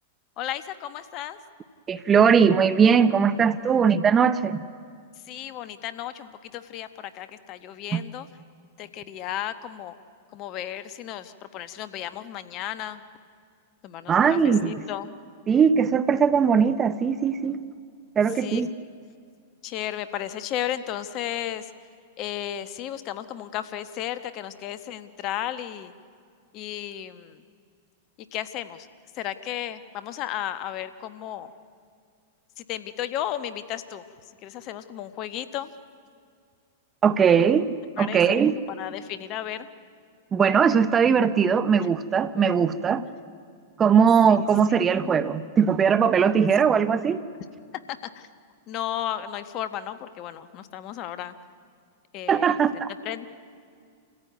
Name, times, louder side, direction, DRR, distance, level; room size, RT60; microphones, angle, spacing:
voice 1, 0.4-1.4 5.3-8.3 8.8-9.9 10.3-13.0 13.8-15.1 18.4-18.6 19.6-21.7 22.2-25.9 26.5-27.4 28.3-28.9 29.1-31.5 32.6-34.0 34.4-35.7 38.0-39.7 41.8-41.9 44.3-44.8 47.9-48.3 48.7-51.3 52.1-52.5 53.0-53.3, left 11 dB, 45° left, 11 dB, 1.2 m, -34 dB
voice 2, 1.9-4.6 7.9-8.0 14.1-14.7 15.5-17.6 18.2-18.7 37.0-38.6 40.3-43.1 43.8-47.2 52.3-52.9, right 6 dB, 25° right, 13 dB, 0.9 m, -20 dB
27.5 x 15.0 x 9.5 m, 2.2 s
hypercardioid pair, 105°, 0 cm